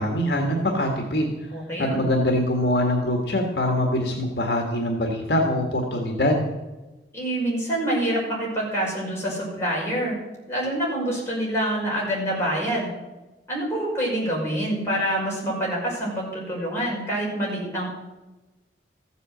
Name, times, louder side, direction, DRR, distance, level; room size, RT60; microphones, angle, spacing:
voice 1, 0.0-1.3 1.8-6.4, left 1 dB, 65° left, 2 dB, 1.7 m, -23 dB
voice 2, 1.5-2.0 7.1-10.2 10.5-12.9 13.5-17.9, right 1 dB, 15° left, -5 dB, 5.6 m, -26 dB
14.5 x 8.2 x 7.8 m, 1.1 s
head